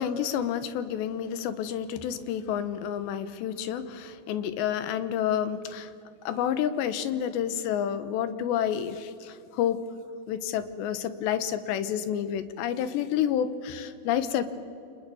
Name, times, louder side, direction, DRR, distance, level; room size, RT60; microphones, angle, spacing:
voice 1, 0.0-5.9 6.2-9.8 10.3-14.4, left 9 dB, 80° left, 11 dB, 3.3 m, -29 dB
29.5 x 26.5 x 7.0 m, 2.6 s
omnidirectional pair, 5.0 m